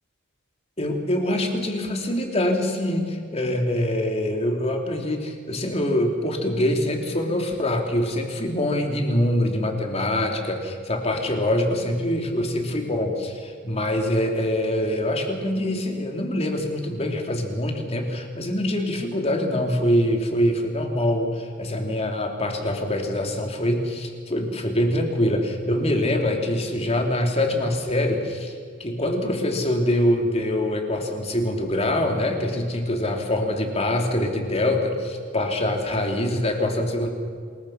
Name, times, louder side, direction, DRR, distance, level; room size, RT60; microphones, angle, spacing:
voice 1, 0.8-28.5 28.8-37.1, left 1 dB, 30° left, 3 dB, 3.0 m, -24 dB
26.5 x 21.5 x 5.8 m, 2.1 s
head